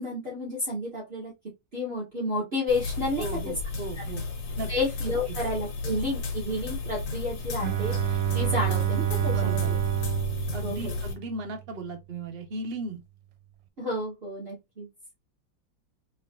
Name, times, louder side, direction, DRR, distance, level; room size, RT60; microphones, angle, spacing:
voice 1, 0.0-1.3 1.7-3.5 4.7-9.6 10.6-10.9 13.8-14.9, left 2 dB, 35° right, 1.6 m, -31 dB
sound 1, 2.7-11.1, left 4 dB, 75° left, 1.8 m, -34 dB
voice 2, 3.2-4.2 4.6-4.7 5.3-5.4 9.3-9.7 10.5-13.0, right 3 dB, 60° right, 0.6 m, -36 dB
Bowed string instrument, 7.6-11.5, right 14 dB, 85° right, 1.4 m, -28 dB
4.4 x 3.1 x 2.3 m
omnidirectional pair, 2.1 m